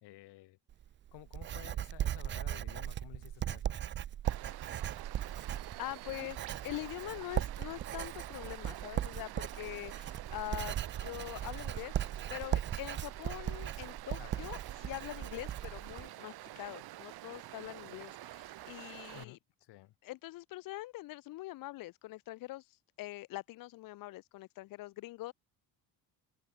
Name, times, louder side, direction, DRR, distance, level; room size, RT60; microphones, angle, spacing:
voice 1, 0.0-0.6 1.1-3.8 14.2-14.5 19.1-19.9, left 17 dB, 75° left, 3.0 m, -53 dB
Writing, 0.7-16.1, right 11 dB, 30° right, 0.3 m, -38 dB
Bird vocalization bird call bird song, 4.1-8.2, right 18 dB, 85° right, 3.6 m, -61 dB
Stream, 4.2-19.2, right 15 dB, 65° right, 1.3 m, -48 dB
voice 2, 5.4-10.7 11.0-19.4 20.0-25.3, left 17 dB, 55° left, 0.5 m, -44 dB
open air
cardioid pair, 125°, 40 cm